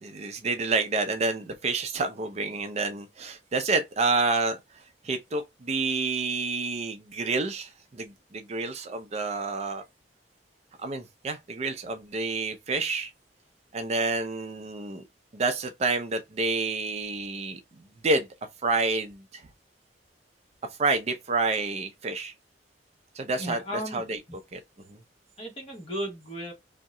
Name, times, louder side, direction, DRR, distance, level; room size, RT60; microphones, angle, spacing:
voice 1, 0.0-4.6 5.0-9.8 10.8-13.1 13.7-15.0 15.3-17.6 18.0-18.3 18.6-19.4 20.8-22.3 23.2-23.6 23.9-24.2 24.5-24.6 24.9-25.0, right 3 dB, 40° right, 0.4 m, -28 dB
voice 2, 23.4-24.0 25.4-26.5, equal, 35° left, 1.1 m, -35 dB
2.7 x 2.1 x 3.5 m
head